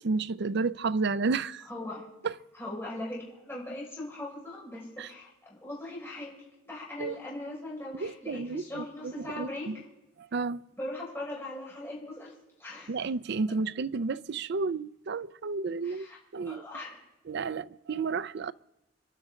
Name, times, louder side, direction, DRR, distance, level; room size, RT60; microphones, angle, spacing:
voice 1, 0.0-1.6 2.2-2.3 5.0-5.1 7.0-7.2 8.0-9.8 10.2-10.6 12.9-16.1 16.3-16.6 17.3-18.5, right 4 dB, 60° right, 0.5 m, -31 dB
voice 2, 1.7-2.0 2.5-6.3 6.7-9.7 10.8-12.3 12.6-12.9 15.8-16.2 16.4-17.0, left 1 dB, 15° left, 5.8 m, -40 dB
29.5 x 11.5 x 3.8 m
head